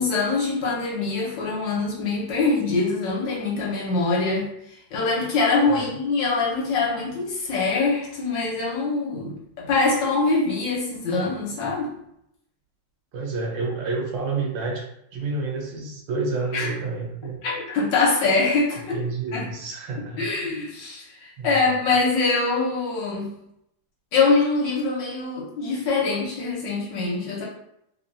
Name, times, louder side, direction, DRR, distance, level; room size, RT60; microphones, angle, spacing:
voice 1, 0.0-4.5 4.9-11.9 16.5-16.7 17.4-18.9 19.3-19.4 20.2-23.3 24.1-27.4, left 3 dB, 70° left, -4 dB, 1.4 m, -24 dB
voice 2, 13.1-14.9 15.1-17.4 18.9-20.3 21.4-21.7, right 3 dB, 75° right, 0 dB, 1.3 m, -29 dB
3.3 x 2.2 x 2.5 m, 0.76 s
omnidirectional pair, 2.2 m